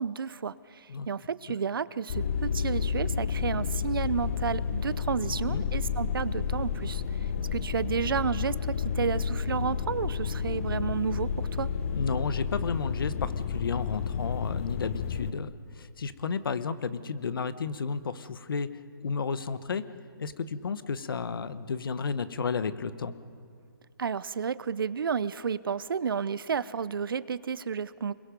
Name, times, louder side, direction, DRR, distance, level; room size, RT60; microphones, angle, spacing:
voice 1, 0.0-11.7 24.0-28.1, right 6 dB, 65° right, 17 dB, 0.7 m, -31 dB
sound 1, 2.1-15.3, left 6 dB, 35° left, 0.8 m, -31 dB
voice 2, 11.9-18.7 19.0-19.8 20.2-23.1, left 5 dB, 65° left, 13 dB, 1.2 m, -32 dB
29.0 x 22.0 x 5.3 m, 2.3 s
hypercardioid pair, 160°, 13 cm